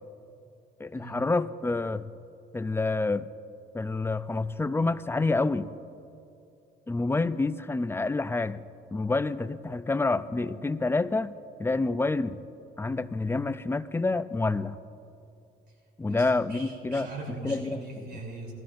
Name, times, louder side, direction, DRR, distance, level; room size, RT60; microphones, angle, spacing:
voice 1, 0.8-2.1 2.5-3.3 3.7-5.7 6.9-8.6 8.9-11.3 11.6-12.4 12.8-14.8 16.0-17.1 17.4-17.8, left 3 dB, 10° left, 13 dB, 0.4 m, -28 dB
voice 2, 16.1-18.5, right 2 dB, 55° right, -1 dB, 3.3 m, -40 dB
20.0 x 13.5 x 2.5 m, 2.7 s
cardioid pair, 90°, 20 cm